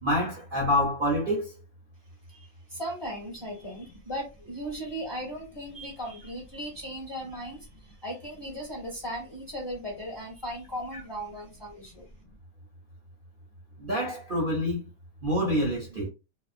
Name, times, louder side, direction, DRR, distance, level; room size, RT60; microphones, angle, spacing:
voice 1, 0.0-1.5 13.8-14.8 15.2-16.1, equal, 45° right, 0.7 m, -27 dB
voice 2, 2.3-12.1, equal, 20° left, 0.9 m, -37 dB
2.9 x 2.1 x 2.4 m
omnidirectional pair, 1.6 m